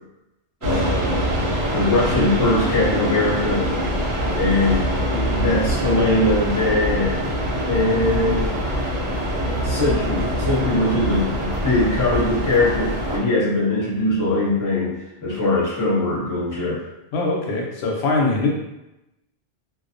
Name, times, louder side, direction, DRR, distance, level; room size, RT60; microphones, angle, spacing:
voice 1, 0.6-1.3 1.7-3.7 4.3-7.2 7.6-8.5 9.6-15.0 15.2-16.8, left 2 dB, 20° left, -8 dB, 0.8 m, -21 dB
sound 1, 0.6-13.2, equal, 85° right, 0.9 m, -24 dB
voice 2, 17.1-18.5, left 3 dB, 70° left, -1 dB, 0.8 m, -22 dB
2.4 x 2.0 x 2.5 m, 0.92 s
omnidirectional pair, 1.2 m